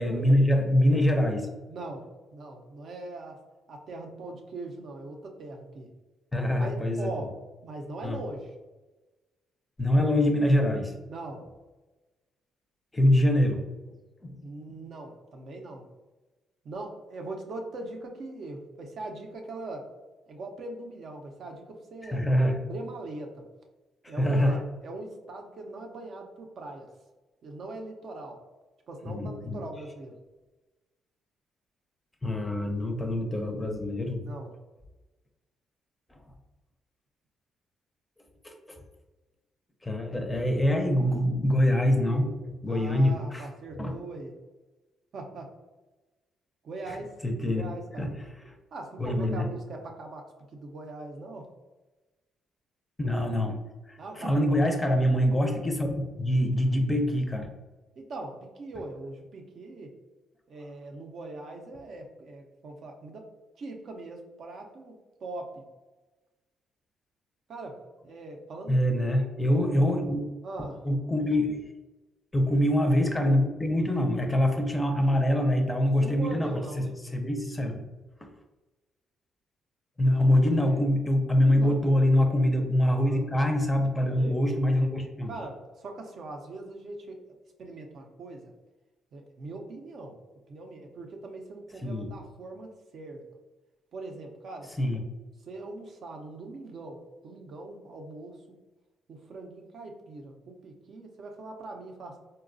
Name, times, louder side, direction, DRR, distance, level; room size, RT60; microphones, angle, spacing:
voice 1, 0.0-1.5 6.3-7.1 8.0-8.2 9.8-10.9 12.9-13.6 14.2-14.4 22.0-22.6 24.0-24.6 29.1-29.6 32.2-34.2 36.1-36.2 38.4-38.8 39.8-43.5 43.7-43.9 46.9-47.0 47.2-48.1 48.5-48.6 49.0-49.5 53.0-53.6 53.9-57.5 68.7-70.2 70.9-71.6 72.3-76.8 77.1-77.8 78.2-78.3 80.0-85.3 91.8-92.1 94.8-95.0, left 1 dB, 15° left, 4 dB, 0.5 m, -24 dB
voice 2, 1.7-3.4 3.7-5.9 6.6-7.4 7.6-8.5 11.1-11.5 14.4-15.9 16.6-19.9 20.3-22.2 22.6-23.4 24.1-26.9 27.4-28.4 28.9-30.2 34.2-34.5 42.7-44.3 45.1-45.5 46.6-47.1 47.5-48.1 48.7-51.5 54.0-54.5 58.0-59.9 60.5-63.3 63.6-65.6 67.5-68.8 69.1-69.3 70.4-70.8 75.8-77.0 80.7-80.8 81.5-81.8 82.8-83.2 84.2-84.4 85.3-87.2 87.6-88.5 89.1-90.1 90.5-93.2 93.9-94.7 95.4-98.6 99.1-102.2, right 2 dB, 60° right, 2 dB, 0.6 m, -41 dB
3.9 x 2.2 x 2.5 m, 1.2 s
cardioid pair, 90°, 0 cm